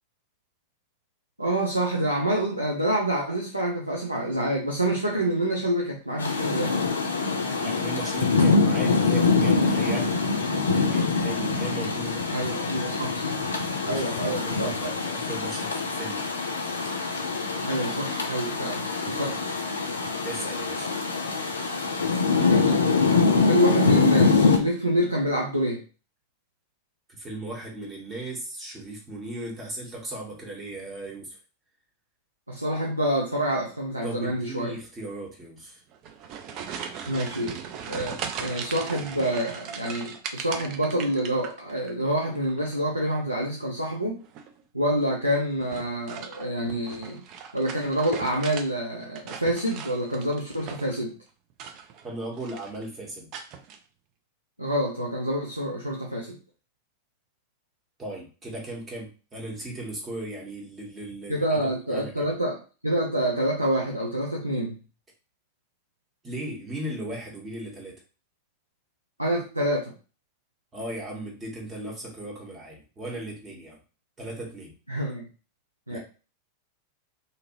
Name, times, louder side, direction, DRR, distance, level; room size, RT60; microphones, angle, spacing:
voice 1, 1.4-6.7 12.3-13.3 13.9-14.9 17.6-19.6 22.3-23.0 23.3-25.8 32.5-34.7 37.1-37.6 37.9-44.2 44.7-47.2 47.5-51.1 54.6-56.4 61.3-64.8 69.2-69.9 74.9-75.3 75.9-76.0, right 1 dB, 85° right, -2 dB, 0.6 m, -27 dB
Rain, 6.2-24.6, left 4 dB, 75° left, 0.5 m, -24 dB
voice 2, 7.6-10.2 10.7-12.3 13.8-16.2 19.0-19.2 20.2-20.9 27.1-31.4 34.0-35.8 52.0-53.3 58.0-61.6 61.9-62.3 66.2-67.9 70.7-73.8 74.2-74.7 75.9-76.0, right 1 dB, 20° right, -2 dB, 1.2 m, -37 dB
sound 1, 35.9-41.9 42.2-42.8 44.2-44.6 45.6-48.7 49.0-51.0 51.5-52.1 52.4-52.8 53.3-53.8, right 7 dB, 40° right, 0.4 m, -38 dB
2.7 x 2.5 x 2.9 m, 0.35 s
figure-of-eight pair, 90°, 0 cm